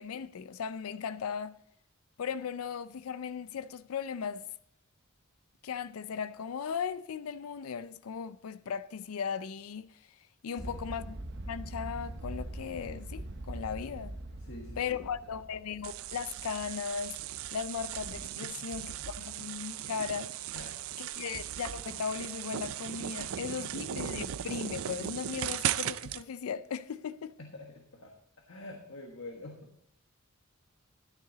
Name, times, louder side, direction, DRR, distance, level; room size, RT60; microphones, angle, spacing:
voice 1, 0.0-1.6 2.2-4.5 5.6-9.9 10.4-11.2 11.5-14.1 14.8-17.2 17.5-20.3 21.0-27.3, left 7 dB, 85° left, 0.4 m, -37 dB
voice 2, 10.5-10.8 14.4-15.0 18.4-19.1 20.5-20.8 23.1-23.9 27.4-29.8, left 2 dB, 70° left, 1.4 m, -48 dB
sound 1, 10.6-18.2, right 1 dB, 50° right, 0.9 m, -43 dB
sound 2, 15.8-26.2, right 11 dB, 75° right, 0.4 m, -37 dB
12.5 x 10.0 x 3.9 m
head